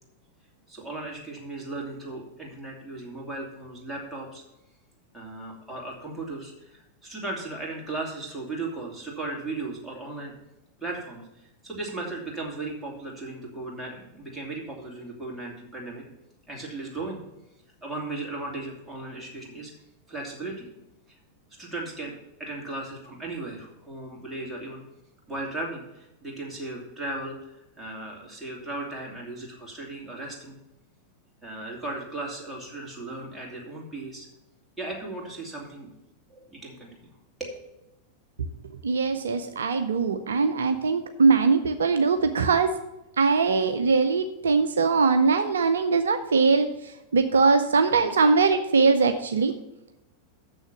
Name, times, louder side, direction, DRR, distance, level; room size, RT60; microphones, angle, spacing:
voice 1, 0.7-4.4 5.1-10.3 10.8-16.0 16.5-17.2 17.8-19.7 20.1-20.7 21.6-24.8 25.3-30.6 31.4-34.3 34.8-35.9 36.3-37.1 37.4-37.6, right 2 dB, 5° right, -3 dB, 2.7 m, -36 dB
voice 2, 38.8-42.7 43.2-49.5, right 4 dB, 65° right, 8 dB, 0.5 m, -21 dB
7.0 x 6.3 x 7.3 m, 0.92 s
figure-of-eight pair, 90°, 0 cm